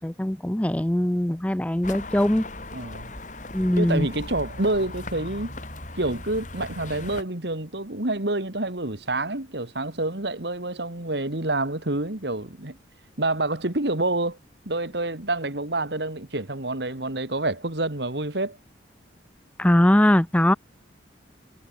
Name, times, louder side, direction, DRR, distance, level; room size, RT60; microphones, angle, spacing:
voice 1, 0.0-2.5 3.5-4.1 19.6-20.5, left 1 dB, 5° left, 0.5 m, -21 dB
sound 1, 1.8-7.2, left 2 dB, 40° left, 7.0 m, -38 dB
voice 2, 2.7-3.1 3.8-5.5 5.9-12.8 13.2-14.4 14.6-18.6, right 2 dB, 65° right, 2.5 m, -28 dB
head